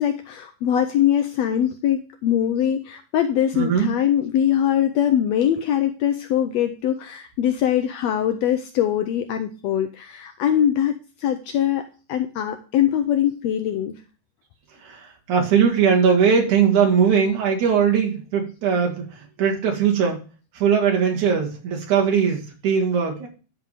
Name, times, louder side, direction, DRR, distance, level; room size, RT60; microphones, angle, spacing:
voice 1, 0.0-10.9 11.2-13.9, left 10 dB, 75° left, 7 dB, 1.6 m, -22 dB
voice 2, 3.5-3.9 14.8-20.2 20.5-23.3, right 7 dB, 75° right, 1 dB, 3.3 m, -20 dB
10.5 x 3.6 x 6.6 m, 0.35 s
omnidirectional pair, 3.5 m